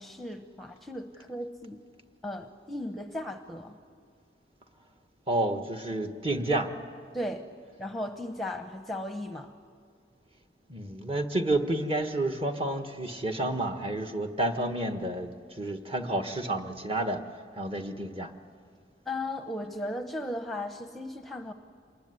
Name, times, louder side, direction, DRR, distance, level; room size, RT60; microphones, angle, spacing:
voice 1, 0.0-1.8 2.2-3.8 7.1-7.4 7.8-9.5 19.1-21.5, left 1 dB, ahead, 6 dB, 0.9 m, -36 dB
voice 2, 5.3-6.7 10.7-17.2 17.6-18.3, right 1 dB, 30° right, 5 dB, 1.5 m, -30 dB
26.5 x 20.5 x 9.7 m, 2.3 s
head